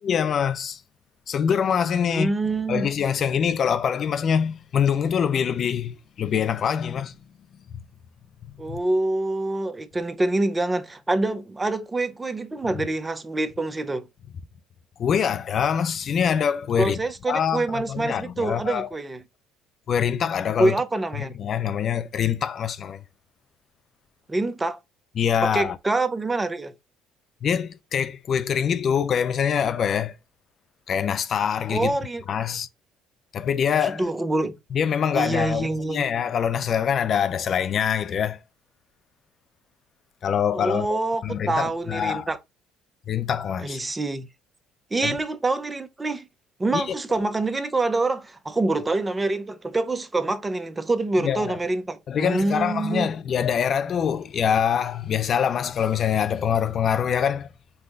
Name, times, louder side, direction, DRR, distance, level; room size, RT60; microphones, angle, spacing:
voice 1, 0.0-0.8 1.3-2.3 2.7-7.2 7.7-7.8 8.7-8.8 15.0-17.0 17.3-18.9 19.9-20.8 21.2-23.0 25.2-25.8 27.4-30.2 30.9-31.9 32.3-32.7 33.3-34.0 34.7-38.4 40.2-41.0 41.2-42.3 43.1-43.8 45.0-45.2 46.7-46.9 51.2-51.6 52.1-57.5, left 8 dB, 50° left, 0.5 m, -24 dB
voice 2, 2.1-2.9 8.6-14.1 16.8-19.2 20.6-21.4 24.3-24.8 25.4-26.7 31.7-32.2 33.8-34.6 35.1-36.0 40.5-42.4 43.6-44.3 44.9-46.3 46.6-53.1, right 2 dB, 20° right, 0.7 m, -26 dB
5.5 x 2.3 x 3.8 m
supercardioid pair, 80°, 0 cm